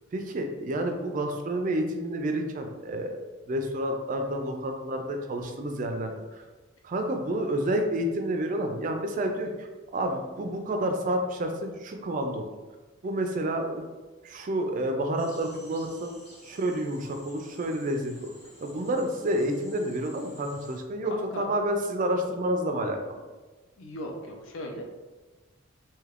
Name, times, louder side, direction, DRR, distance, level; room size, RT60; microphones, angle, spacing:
voice 1, 0.1-3.2 3.5-6.4 6.8-9.7 9.9-12.5 13.0-13.9 14.2-16.1 16.4-18.3 18.6-23.2, right 1 dB, 40° right, 4 dB, 0.3 m, -29 dB
sound 1, 15.2-20.8, equal, 30° left, 1.0 m, -53 dB
voice 2, 21.0-21.5 23.8-24.8, left 1 dB, 65° left, 2 dB, 0.5 m, -38 dB
3.3 x 2.7 x 2.4 m, 1.2 s
head